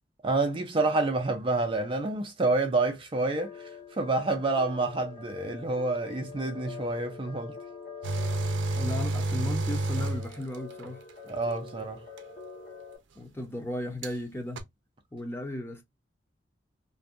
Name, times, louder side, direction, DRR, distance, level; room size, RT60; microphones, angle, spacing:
voice 1, 0.2-7.6 11.3-12.0, right 2 dB, 30° right, 0.4 m, -28 dB
sound 1, 3.4-13.0, left 5 dB, 55° left, 1.0 m, -44 dB
sound 2, 8.0-10.9 12.2-12.3 14.0-14.1 14.6-14.7, right 2 dB, 85° right, 0.5 m, -29 dB
voice 2, 8.7-11.0 13.2-14.6 15.1-15.8, left 1 dB, 15° left, 0.7 m, -35 dB
2.6 x 2.2 x 2.4 m
head